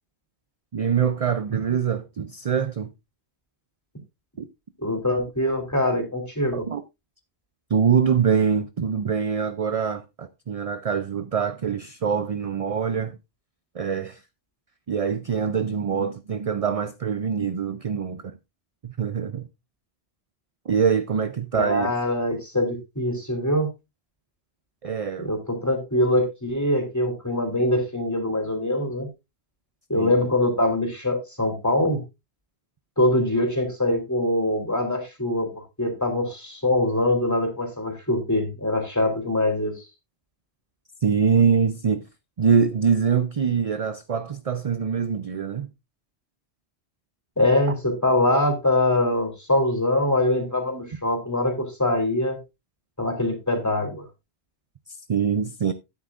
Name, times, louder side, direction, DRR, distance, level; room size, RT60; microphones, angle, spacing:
voice 1, 0.7-2.9 4.4-4.5 6.5-6.8 7.7-13.2 13.7-14.2 14.9-18.2 18.8-19.5 20.7-21.9 24.8-25.3 29.9-30.2 41.0-42.1 42.4-45.7 55.1-55.7, right 6 dB, 45° right, 0.5 m, -24 dB
voice 2, 4.8-6.7 21.5-23.7 25.2-29.1 29.9-32.0 33.0-39.9 47.4-52.4 53.0-54.0, left 1 dB, 15° left, 3.3 m, -23 dB
12.0 x 9.8 x 2.5 m
omnidirectional pair, 1.1 m